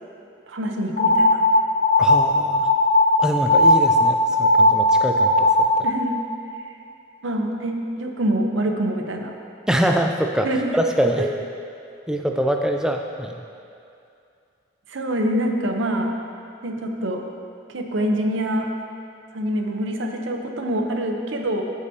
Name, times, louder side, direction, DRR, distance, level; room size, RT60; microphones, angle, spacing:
voice 1, 0.5-1.4 5.8-6.2 7.2-9.3 10.4-10.8 11.2-11.3 14.9-16.1 16.6-17.2 17.7-18.7 19.3-21.6, right 1 dB, 75° right, 3 dB, 0.7 m, -25 dB
sound 1, 1.0-5.9, left 1 dB, 60° left, 1.3 m, -17 dB
voice 2, 2.0-2.7 3.2-5.5 5.8-5.9 9.7-10.5 10.7-11.3 12.1-13.4, equal, 5° right, 3 dB, 0.3 m, -24 dB
14.0 x 5.0 x 2.7 m, 2.5 s
head